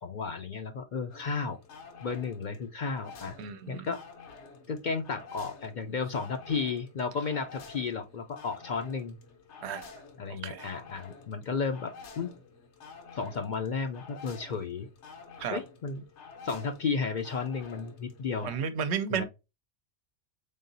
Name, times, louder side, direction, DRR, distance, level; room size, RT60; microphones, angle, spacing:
voice 1, 0.0-1.6 2.0-3.4 3.7-4.0 4.7-9.2 10.2-12.4 13.1-14.9 15.5-16.0 16.4-18.5 19.1-19.2, left 5 dB, 55° left, 0.6 m, -33 dB
sound 1, 1.1-18.6, left 4 dB, 75° left, 1.1 m, -50 dB
voice 2, 3.4-3.8 9.6-9.9 10.4-10.7 15.4-15.6 18.4-19.2, right 7 dB, 70° right, 0.8 m, -33 dB
3.7 x 3.7 x 2.6 m
omnidirectional pair, 1.2 m